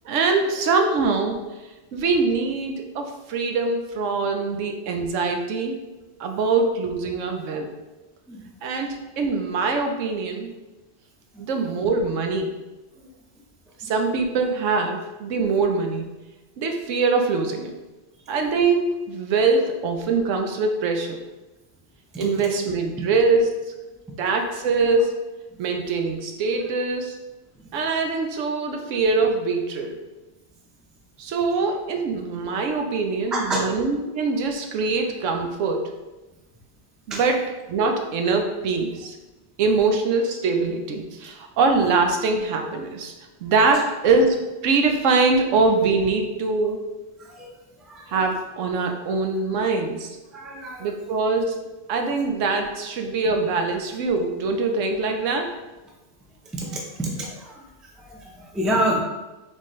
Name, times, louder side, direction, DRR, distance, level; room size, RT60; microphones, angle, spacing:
voice 1, 0.1-1.4 1.9-5.8 6.2-7.7 8.6-10.5 11.4-12.6 13.8-16.1 16.6-17.7 18.3-21.2 22.2-23.7 24.2-25.2 25.6-27.2 27.7-30.0 31.2-35.9 37.1-37.4 37.7-39.1 39.6-43.1 43.4-46.9 48.1-50.1 50.8-51.6 51.9-55.6, right 4 dB, 90° right, 4 dB, 1.0 m, -23 dB
voice 2, 33.3-33.6 37.1-37.2 47.2-47.5 47.8-48.1 50.3-50.9 56.5-59.0, right 1 dB, ahead, -2 dB, 0.3 m, -29 dB
4.1 x 3.8 x 3.1 m, 1.1 s
omnidirectional pair, 1.3 m